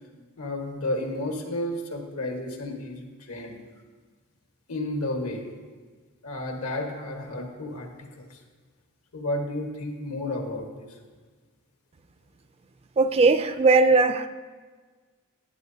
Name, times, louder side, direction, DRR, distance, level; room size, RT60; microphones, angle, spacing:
voice 1, 0.4-3.6 4.7-5.4 6.2-7.9 8.2-8.4 9.1-11.0, left 1 dB, 80° left, 2 dB, 1.4 m, -32 dB
voice 2, 13.0-14.3, right 3 dB, 30° right, 11 dB, 0.3 m, -19 dB
14.0 x 8.7 x 2.7 m, 1.5 s
head